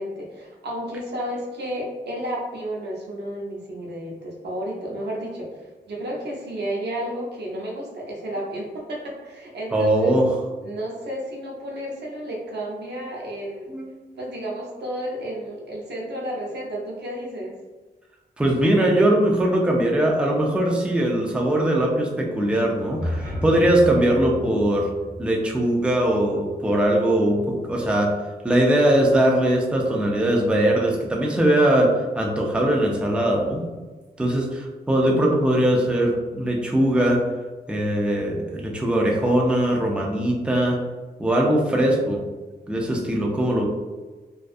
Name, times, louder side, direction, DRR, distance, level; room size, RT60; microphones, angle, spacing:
voice 1, 0.0-10.2 10.6-13.7 14.1-17.6, right 1 dB, 85° right, -3 dB, 0.7 m, -32 dB
voice 2, 9.7-10.3 13.7-13.9 18.4-24.9 25.2-28.1 28.4-33.7 34.2-37.2 37.7-40.8 41.2-42.2 42.7-43.7, right 1 dB, 5° right, -1 dB, 0.4 m, -21 dB
sound 1, 22.8-26.9, left 1 dB, 15° left, 1.1 m, -34 dB
2.4 x 2.3 x 2.4 m, 1.3 s
wide cardioid pair, 120°, 17 cm